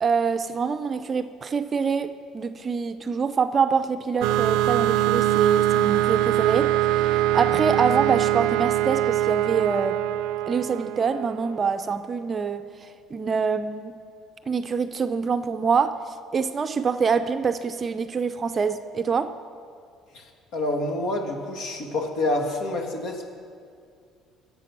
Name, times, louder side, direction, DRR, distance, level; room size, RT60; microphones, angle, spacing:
voice 1, 0.0-10.0 10.5-13.9 14.5-16.0 16.3-19.3, right 5 dB, 25° right, 9 dB, 0.5 m, -25 dB
sound 1, 4.2-11.6, right 13 dB, 85° right, 0.4 m, -23 dB
voice 2, 20.1-23.2, left 2 dB, 70° left, 2 dB, 2.1 m, -28 dB
20.0 x 8.2 x 6.0 m, 2.3 s
cardioid pair, 160°, 0 cm